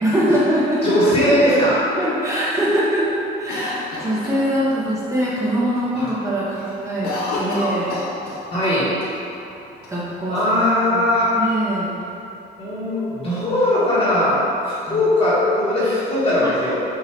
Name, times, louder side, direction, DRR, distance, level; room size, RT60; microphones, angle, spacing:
voice 1, 0.0-1.3 2.0-7.1 7.4-8.0 9.9-10.4 10.9-11.0 11.3-11.9 14.9-15.0 16.4-16.5, equal, 15° right, -9 dB, 1.1 m, -22 dB
voice 2, 0.8-2.1 5.9-6.1 8.5-8.9 10.3-11.3 12.6-14.4 14.6-16.8, left 1 dB, 35° left, -11 dB, 1.4 m, -19 dB
Cough, 3.5-5.0 5.4-5.5 5.8-6.2 6.5-8.7 9.0-9.1 9.8-10.6, left 2 dB, 70° left, 0.9 m, -29 dB
5.6 x 2.7 x 3.4 m, 2.9 s
cardioid pair, 110°, 17 cm